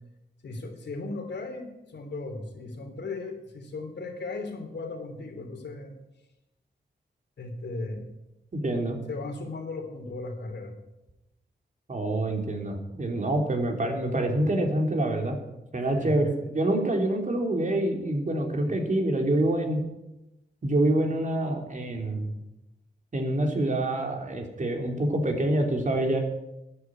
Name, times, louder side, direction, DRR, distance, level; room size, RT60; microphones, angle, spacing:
voice 1, 0.4-5.9 7.4-8.1 9.1-10.7 15.8-16.5 18.6-18.8, left 3 dB, 80° left, 5 dB, 3.1 m, -37 dB
voice 2, 8.5-9.0 11.9-15.4 15.7-19.8 20.6-22.3 23.1-26.2, right 1 dB, 45° right, 2 dB, 3.3 m, -26 dB
13.0 x 9.8 x 8.9 m, 0.93 s
wide cardioid pair, 85°, 18 cm